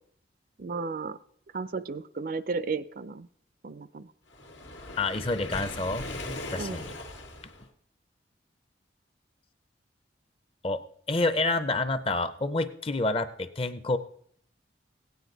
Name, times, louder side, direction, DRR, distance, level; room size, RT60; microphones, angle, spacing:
voice 1, 0.6-1.2 1.5-3.3 3.6-4.1 6.6-6.8, right 4 dB, 50° right, 14 dB, 0.4 m, -34 dB
Waves surf, 4.3-7.6, left 2 dB, 85° left, 1.5 m, -39 dB
voice 2, 5.0-6.1 6.5-6.9 10.6-10.8 11.1-14.0, left 2 dB, 30° left, 12 dB, 0.6 m, -28 dB
16.5 x 9.4 x 4.0 m, 0.65 s
head